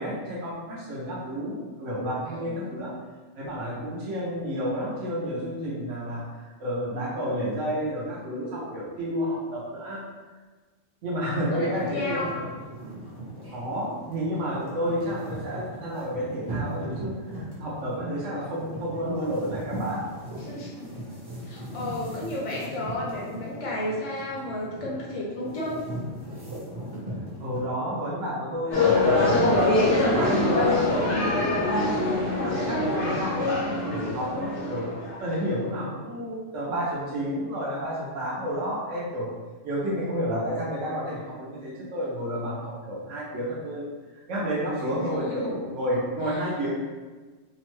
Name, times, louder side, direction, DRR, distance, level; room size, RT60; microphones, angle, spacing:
voice 1, 0.0-2.9 3.4-6.2 6.6-10.0 11.0-12.4 13.5-20.2 27.4-29.8 30.1-39.3 39.6-43.8 44.3-46.7, equal, 75° right, -7 dB, 1.0 m, -31 dB
voice 2, 2.2-2.6 11.4-12.3 20.3-20.9 21.5-25.8 44.8-45.5 46.3-46.4, left 1 dB, 40° left, -4 dB, 0.5 m, -33 dB
sound 1, 11.7-27.6, right 1 dB, 25° right, 0.7 m, -38 dB
sound 2, 28.7-35.3, left 2 dB, 70° left, 1.0 m, -23 dB
2.9 x 2.1 x 3.0 m, 1.3 s
omnidirectional pair, 1.3 m